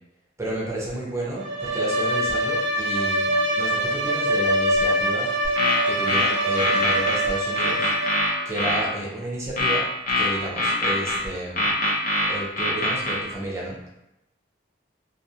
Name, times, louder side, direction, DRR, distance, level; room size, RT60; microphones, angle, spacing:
voice 1, 0.4-7.9 8.4-9.9 10.2-11.7 12.3-14.0, right 1 dB, 15° right, -4 dB, 0.6 m, -32 dB
Bowed string instrument, 1.4-8.5, right 1 dB, 75° right, 0.4 m, -24 dB
sound 1, 5.4-7.2 7.6-8.8 9.6-11.2 11.6-13.2, left 2 dB, 45° left, 0.7 m, -23 dB
2.4 x 2.4 x 2.7 m, 0.90 s
head